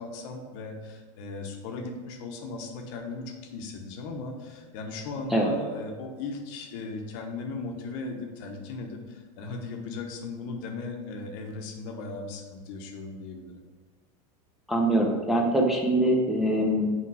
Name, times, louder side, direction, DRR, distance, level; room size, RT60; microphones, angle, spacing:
voice 1, 0.0-13.6, left 3 dB, 65° left, 3 dB, 1.2 m, -37 dB
voice 2, 14.7-17.0, right 1 dB, ahead, -2 dB, 1.1 m, -23 dB
5.9 x 5.2 x 4.9 m, 1.4 s
supercardioid pair, 125°, 17 cm